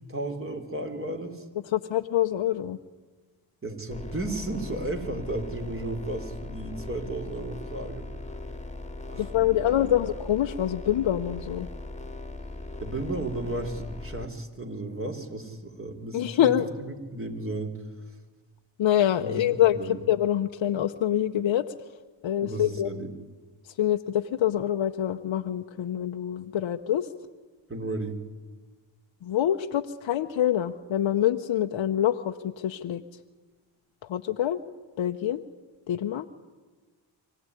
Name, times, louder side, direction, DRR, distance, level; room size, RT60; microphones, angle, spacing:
voice 1, 0.1-1.4 3.6-8.1 9.1-9.8 12.8-17.8 19.2-19.4 19.7-20.0 22.4-23.1 27.7-28.2, right 2 dB, 25° right, 4 dB, 4.2 m, -34 dB
voice 2, 1.7-2.8 9.1-11.7 16.1-16.7 18.8-19.8 20.1-21.7 22.2-22.9 23.8-27.1 29.2-33.0 34.1-34.6 35.0-35.4 35.9-36.3, left 11 dB, 65° left, 4 dB, 1.0 m, -25 dB
sound 1, 3.9-14.3, left 2 dB, 15° left, 2.2 m, -39 dB
24.5 x 16.5 x 9.9 m, 1.3 s
supercardioid pair, 45°, 49 cm